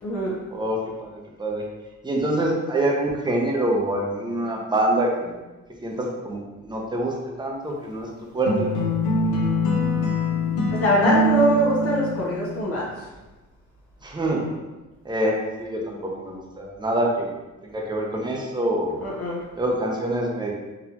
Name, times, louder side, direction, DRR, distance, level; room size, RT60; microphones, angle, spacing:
voice 1, 0.0-0.3 10.7-13.1 19.0-19.4, equal, 50° left, -5 dB, 0.9 m, -23 dB
voice 2, 0.5-1.6 2.0-5.4 5.8-8.1 8.3-8.7 14.0-14.5 15.0-17.3 17.6-19.0 19.6-20.5, right 1 dB, 15° right, -1 dB, 0.8 m, -25 dB
sound 1, 8.5-12.6, left 1 dB, 80° left, 0.8 m, -23 dB
4.1 x 2.7 x 2.9 m, 1.1 s
cardioid pair, 90°, 30 cm